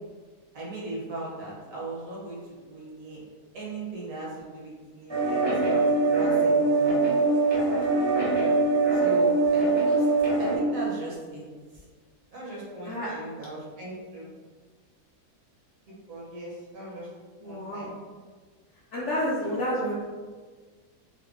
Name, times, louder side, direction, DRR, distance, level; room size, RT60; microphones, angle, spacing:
voice 1, 0.5-3.2 3.5-7.1 8.9-10.1 10.4-11.5 11.7-11.8 12.3-14.3 15.9-17.1 17.4-17.9, right 2 dB, 60° right, -6 dB, 1.4 m, -38 dB
sound 1, 5.1-10.5, right 3 dB, 35° right, 0.4 m, -22 dB
voice 2, 12.7-13.1 17.4-17.9 18.9-20.0, equal, 65° left, -6 dB, 0.7 m, -30 dB
3.8 x 2.1 x 3.5 m, 1.4 s
omnidirectional pair, 1.7 m